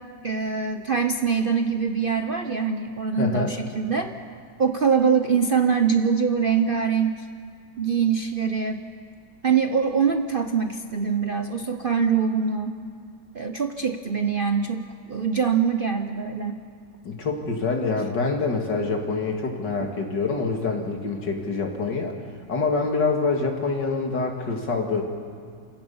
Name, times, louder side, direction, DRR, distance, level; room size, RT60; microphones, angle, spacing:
voice 1, 0.2-4.1 4.6-7.3 7.8-8.8 9.4-12.7 13.3-16.6 19.8-19.9, right 6 dB, 45° right, 6 dB, 0.7 m, -23 dB
voice 2, 3.2-3.5 17.0-22.1 22.5-25.0, left 4 dB, 75° left, 2 dB, 2.9 m, -26 dB
28.5 x 17.0 x 7.1 m, 2.1 s
omnidirectional pair, 1.9 m